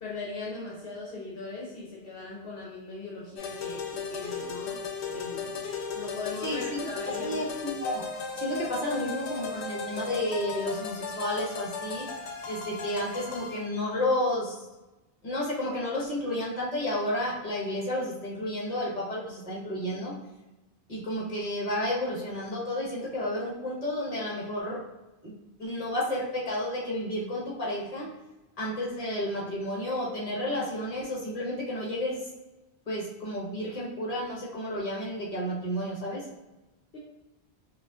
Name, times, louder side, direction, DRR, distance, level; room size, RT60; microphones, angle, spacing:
voice 1, 0.0-5.6 5.9-7.4 36.9-37.0, left 3 dB, 60° left, -5 dB, 1.0 m, -39 dB
sound 1, 3.4-13.7, left 5 dB, 85° left, 0.9 m, -36 dB
voice 2, 6.4-6.8 7.2-8.1 8.3-12.0 12.5-14.7 15.2-20.1 20.9-24.8 25.2-25.3 25.6-28.1 28.6-32.2 32.9-36.2, left 1 dB, 35° left, -4 dB, 1.2 m, -31 dB
5.2 x 2.4 x 2.4 m, 1.0 s
omnidirectional pair, 1.1 m